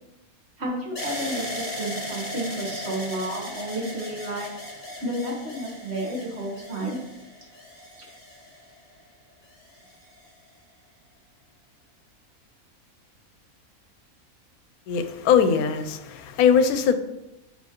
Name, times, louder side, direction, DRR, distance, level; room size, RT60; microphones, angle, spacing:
voice 1, 0.6-4.5 5.0-7.0, right 1 dB, 50° right, -2 dB, 1.5 m, -31 dB
sound 1, 1.0-9.0 9.7-10.3, left 1 dB, 35° left, 1.9 m, -37 dB
voice 2, 14.9-16.9, left 7 dB, 85° left, 10 dB, 1.1 m, -21 dB
8.6 x 3.7 x 2.9 m, 0.91 s
omnidirectional pair, 1.5 m